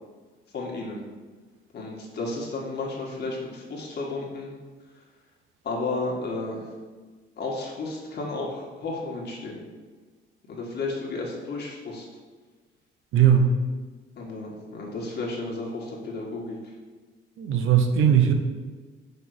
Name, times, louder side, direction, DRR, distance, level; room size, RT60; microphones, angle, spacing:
voice 1, 0.5-1.0 1.7-4.5 5.6-6.7 7.4-9.7 10.5-12.1 14.2-16.6, left 3 dB, 60° left, -3 dB, 1.7 m, -33 dB
voice 2, 13.1-13.6 17.4-18.3, right 8 dB, 90° right, 5 dB, 0.9 m, -19 dB
5.3 x 4.2 x 6.1 m, 1.4 s
cardioid pair, 90°, 20 cm